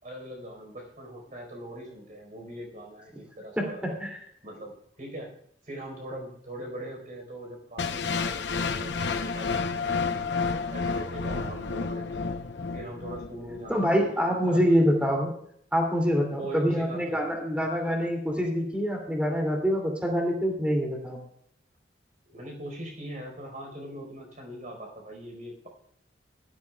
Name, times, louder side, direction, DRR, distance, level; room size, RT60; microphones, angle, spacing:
voice 1, 0.0-4.0 4.4-5.3 5.6-10.3 10.7-12.2 12.7-14.8 16.4-17.2 17.5-17.7 22.3-25.7, right 1 dB, 45° right, 1 dB, 4.5 m, -41 dB
voice 2, 3.6-4.2 13.7-15.3 15.7-21.2, equal, 5° right, 1 dB, 2.7 m, -25 dB
sound 1, 7.8-13.8, left 4 dB, 80° left, 0.9 m, -30 dB
18.0 x 13.0 x 2.4 m, 0.68 s
head